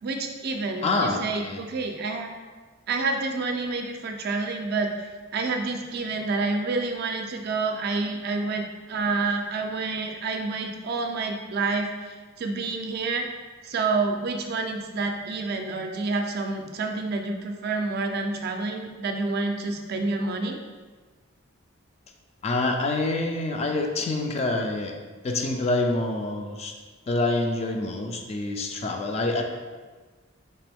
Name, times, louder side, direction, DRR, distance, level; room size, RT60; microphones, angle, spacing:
voice 1, 0.0-2.3 2.9-4.9 5.3-13.3 13.6-20.6, right 3 dB, 50° right, 4 dB, 0.4 m, -28 dB
voice 2, 0.8-1.6 22.4-25.0 25.2-26.7 27.1-29.4, left 2 dB, 30° left, 3 dB, 0.3 m, -26 dB
3.4 x 2.9 x 3.4 m, 1.4 s
head